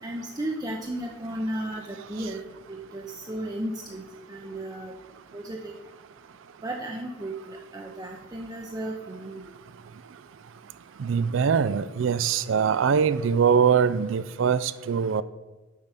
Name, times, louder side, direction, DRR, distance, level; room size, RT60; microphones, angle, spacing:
voice 1, 0.0-2.4 2.7-4.0 4.3-4.9 5.3-5.7 6.6-9.5, right 1 dB, 20° right, 0 dB, 0.6 m, -34 dB
voice 2, 11.0-15.2, right 6 dB, 75° right, 17 dB, 0.4 m, -22 dB
7.2 x 6.6 x 5.6 m, 1.2 s
head